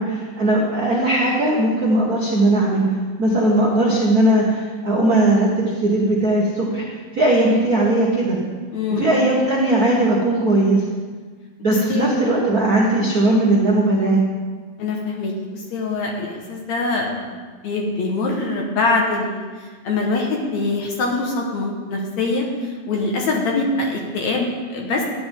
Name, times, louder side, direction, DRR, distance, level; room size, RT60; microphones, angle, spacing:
voice 1, 0.0-2.8 3.2-6.8 7.1-8.4 8.9-10.8 11.6-14.2, right 1 dB, 65° right, -4 dB, 0.9 m, -18 dB
voice 2, 8.7-9.3 11.7-12.4 14.8-17.4 17.6-25.0, left 3 dB, 60° left, 0 dB, 2.2 m, -24 dB
15.0 x 9.7 x 3.6 m, 1.5 s
omnidirectional pair, 4.2 m